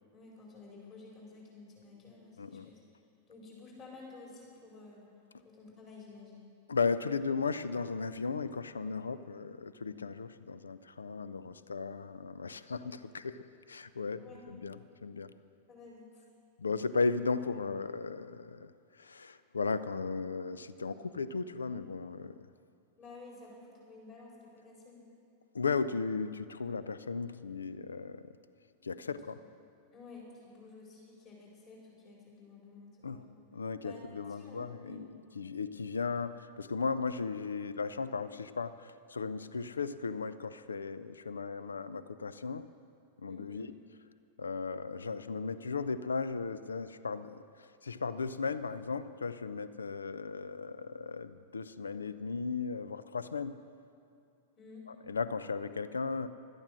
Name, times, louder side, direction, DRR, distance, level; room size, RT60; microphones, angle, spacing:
voice 1, 0.1-2.8 3.3-5.1 5.4-6.5 14.1-14.4 15.7-16.2 23.0-25.0 29.0-29.4 29.9-33.3 33.8-34.0 34.3-35.1 43.3-43.7 54.6-54.9, left 3 dB, 35° left, -3 dB, 4.5 m, -52 dB
voice 2, 2.4-2.7 6.7-13.4 13.7-15.3 16.6-22.4 25.5-28.3 28.8-29.4 33.0-42.7 43.2-43.7 44.4-53.6 54.9-56.3, left 4 dB, 75° left, 14 dB, 0.5 m, -36 dB
17.0 x 12.5 x 6.2 m, 2.4 s
figure-of-eight pair, 90°, 0 cm